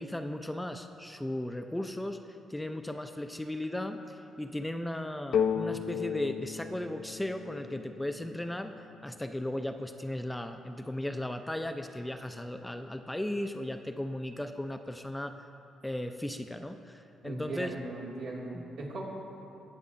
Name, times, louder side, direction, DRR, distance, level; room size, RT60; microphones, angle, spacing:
voice 1, 0.0-2.2 2.5-8.7 9.0-15.3 15.8-17.7 18.5-18.7, left 1 dB, 5° left, 7 dB, 0.4 m, -36 dB
sound 1, 5.3-9.0, left 7 dB, 70° left, 0.5 m, -34 dB
voice 2, 17.2-19.0, right 2 dB, 85° right, -5 dB, 2.2 m, -38 dB
19.0 x 7.1 x 2.6 m, 2.8 s
cardioid pair, 90°, 0 cm